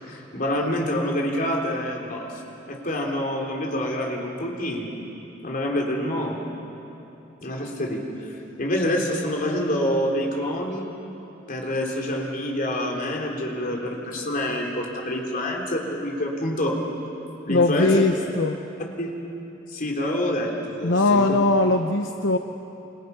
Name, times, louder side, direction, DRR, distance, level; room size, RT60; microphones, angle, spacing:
voice 1, 0.0-2.2 2.7-4.9 5.4-6.4 7.4-10.9 11.5-16.8 17.5-17.9 19.0-19.2 19.7-21.4, left 1 dB, 45° left, 0 dB, 3.7 m, -27 dB
voice 2, 17.5-18.5 20.8-22.4, left 2 dB, 70° left, 5 dB, 0.9 m, -20 dB
28.0 x 26.5 x 5.7 m, 2.9 s
head